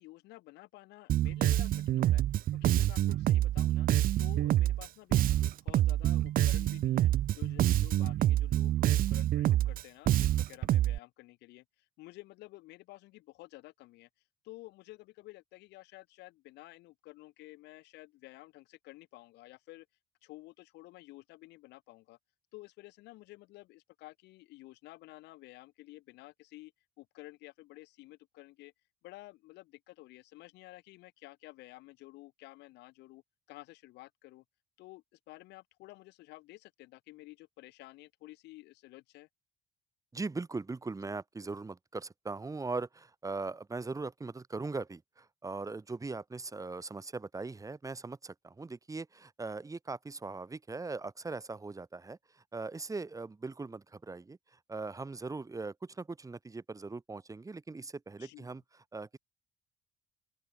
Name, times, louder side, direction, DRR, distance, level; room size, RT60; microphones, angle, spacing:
voice 1, 0.0-2.2 2.5-3.9 4.2-11.6 12.0-14.1 14.4-19.9 20.2-22.2 22.5-26.7 27.0-28.7 29.0-33.2 33.5-34.4 34.8-39.3 58.2-58.5, left 19 dB, 85° left, 4.7 m, -52 dB
Bass guitar, 1.1-11.0, right 13 dB, 55° right, 0.6 m, -27 dB
voice 2, 40.1-58.6 58.9-59.2, right 3 dB, 20° right, 6.2 m, -40 dB
open air
cardioid pair, 110°, 17 cm